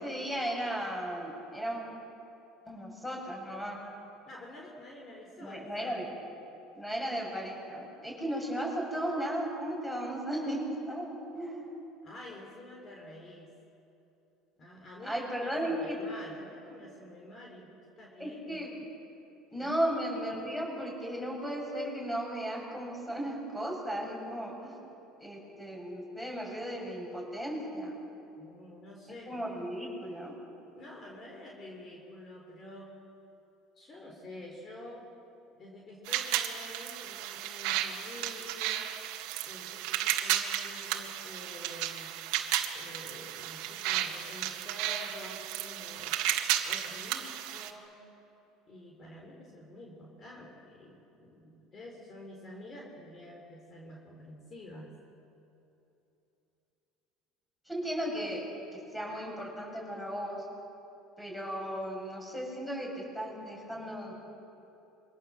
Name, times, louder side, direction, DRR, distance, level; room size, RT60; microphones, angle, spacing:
voice 1, 0.0-1.8 2.7-3.8 5.4-6.1 6.7-11.7 15.0-16.0 18.2-18.8 19.5-24.8 25.2-28.0 29.3-30.4 57.7-58.5 58.7-60.5 61.2-64.1, equal, 5° left, -1 dB, 7.0 m, -35 dB
voice 2, 4.3-6.0 12.0-13.5 14.6-18.6 19.6-19.9 28.4-29.7 30.8-32.9 33.8-35.1 35.5-39.0 39.4-42.1 42.7-46.2 46.7-47.9 48.7-55.0, left 1 dB, 30° left, -1 dB, 4.3 m, -48 dB
sound 1, 36.1-47.7, right 12 dB, 75° right, 2.0 m, -33 dB
27.0 x 24.5 x 7.5 m, 2.9 s
cardioid pair, 140°, 0 cm